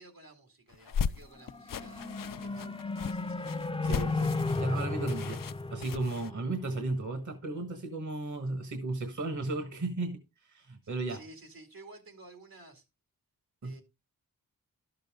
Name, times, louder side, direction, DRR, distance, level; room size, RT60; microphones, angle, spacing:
voice 1, 0.0-2.1 2.4-3.6 10.8-12.8 13.6-13.8, right 2 dB, 80° right, 2.5 m, -53 dB
sound 1, 0.7-6.3, left 7 dB, 70° left, 0.5 m, -37 dB
sound 2, 1.4-6.9, left 3 dB, 15° left, 0.5 m, -34 dB
voice 2, 3.8-5.4 5.7-10.2 10.4-11.2 13.6-13.7, right 2 dB, 55° right, 1.4 m, -35 dB
12.0 x 6.7 x 3.6 m
wide cardioid pair, 60°, 35 cm